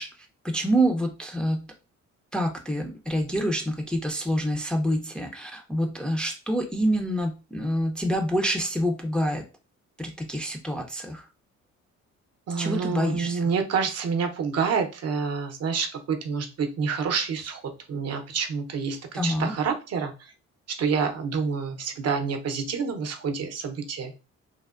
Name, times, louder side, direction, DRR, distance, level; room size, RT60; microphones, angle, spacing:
voice 1, 0.0-1.7 2.3-9.4 10.0-11.3 12.6-13.5 19.1-19.5, equal, 5° left, 2 dB, 0.4 m, -27 dB
voice 2, 12.5-17.6 17.9-20.3 20.8-24.1, right 5 dB, 55° right, 4 dB, 0.6 m, -28 dB
3.3 x 2.1 x 2.3 m, 0.31 s
cardioid pair, 90°, 30 cm